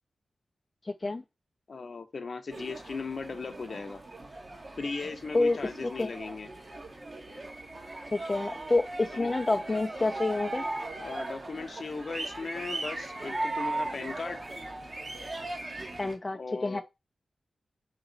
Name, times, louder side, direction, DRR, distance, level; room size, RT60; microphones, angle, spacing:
voice 1, 0.8-1.2 5.3-6.1 8.1-10.7 16.0-16.8, left 2 dB, 30° left, 0.4 m, -28 dB
voice 2, 1.7-4.0 4.8-6.5 9.1-9.3 11.0-14.4 16.3-16.8, left 4 dB, 60° left, 0.7 m, -37 dB
sound 1, 2.5-16.2, right 2 dB, 45° right, 1.1 m, -38 dB
3.9 x 3.0 x 3.9 m
wide cardioid pair, 75°, 0 cm